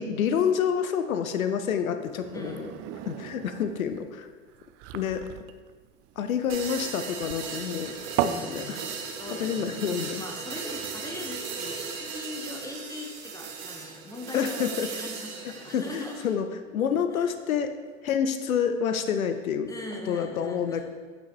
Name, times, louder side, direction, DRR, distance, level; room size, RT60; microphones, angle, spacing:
voice 1, 0.0-2.7 3.1-4.3 4.9-5.2 6.2-7.9 8.2-8.8 9.4-10.2 14.3-14.9 15.7-16.5 16.7-17.7 18.0-19.7 20.1-20.8, left 7 dB, 90° left, 9 dB, 0.6 m, -28 dB
sound 1, 2.0-8.5, right 11 dB, 40° right, 0.4 m, -35 dB
voice 2, 2.3-2.7 8.2-8.7 9.1-16.2 17.1-17.3 19.7-20.8, left 2 dB, 10° left, 2 dB, 1.1 m, -40 dB
sound 2, 6.5-16.3, right 5 dB, 70° right, 1.2 m, -37 dB
8.3 x 6.3 x 3.1 m, 1.5 s
hypercardioid pair, 85°, 41 cm